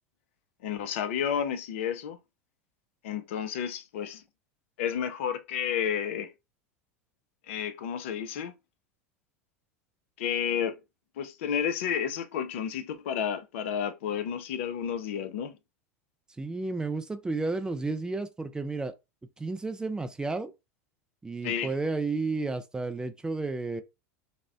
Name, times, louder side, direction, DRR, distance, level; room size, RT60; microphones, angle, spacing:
voice 1, 0.6-2.2 3.0-4.2 4.8-6.3 7.5-8.5 10.2-10.8 11.2-15.5 21.4-21.7, left 8 dB, 60° left, 0.4 m, -31 dB
voice 2, 16.4-18.9 19.4-20.5 21.2-23.8, right 3 dB, 10° right, 0.3 m, -32 dB
3.4 x 2.1 x 2.3 m
figure-of-eight pair, 80°, 8 cm